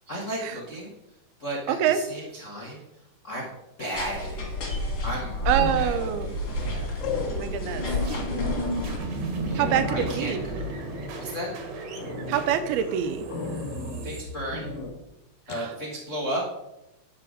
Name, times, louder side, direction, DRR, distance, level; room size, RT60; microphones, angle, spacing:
voice 1, 0.1-0.9 1.4-2.8 3.2-3.4 3.8-4.5 5.0-6.9 9.5-10.7 11.2-11.5 14.0-14.7 15.5-16.4, equal, 80° left, -4 dB, 0.6 m, -34 dB
voice 2, 1.7-2.0 5.5-6.4 7.4-7.9 9.5-10.4 12.3-13.2 15.5-15.7, right 10 dB, 80° right, 10 dB, 2.7 m, -25 dB
sound 1, 3.9-9.0, left 1 dB, 40° left, 3.0 m, -30 dB
sound 2, 5.4-5.8 7.0-7.8 8.2-8.3 8.8-8.9 9.2-9.3 9.5-11.5 12.0-12.4 13.3-14.1 14.5-14.9 15.5-15.7, left 3 dB, 60° left, 2.5 m, -35 dB
sound 3, 6.1-15.0, right 1 dB, 55° right, 2.1 m, -34 dB
9.9 x 6.8 x 5.1 m, 0.89 s
omnidirectional pair, 4.5 m